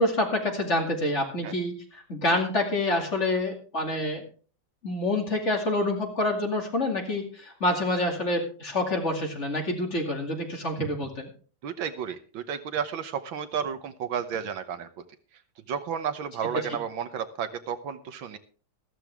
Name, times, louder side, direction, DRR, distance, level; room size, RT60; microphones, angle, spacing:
voice 1, 0.0-4.2 4.8-11.3, left 1 dB, 35° left, 2 dB, 2.7 m, -27 dB
voice 2, 11.6-14.9 15.7-18.4, right 7 dB, 70° right, 10 dB, 1.7 m, -32 dB
14.0 x 13.5 x 3.5 m, 0.39 s
omnidirectional pair, 2.3 m